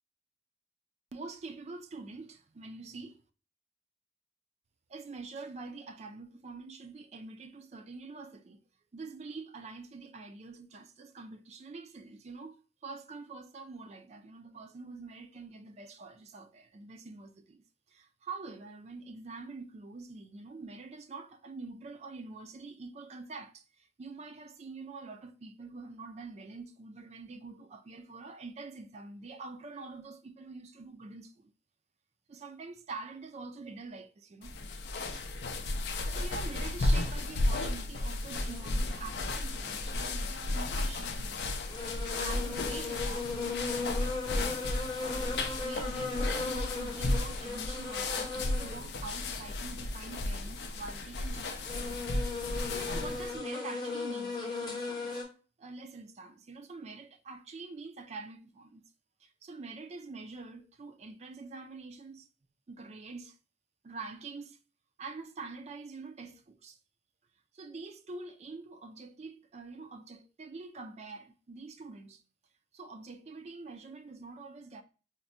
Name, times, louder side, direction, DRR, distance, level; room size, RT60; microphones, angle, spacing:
voice 1, 1.1-3.2 4.9-8.6 8.9-17.6 17.9-31.5 32.3-34.5 36.1-41.6 41.9-43.3 45.6-51.6 52.6-55.2 55.6-58.8 59.2-62.3 62.7-63.4 63.8-64.6 65.0-66.8 67.5-72.2 72.7-74.8, right 3 dB, 35° right, 0.3 m, -45 dB
sound 1, 34.4-53.4, left 2 dB, 60° left, 0.4 m, -34 dB
sound 2, 38.5-38.9 40.5-40.6 41.2-41.3 41.7-49.0 49.3-49.4 50.0-50.9 51.5-55.2, left 3 dB, 25° left, 0.8 m, -37 dB
4.3 x 2.1 x 2.4 m
head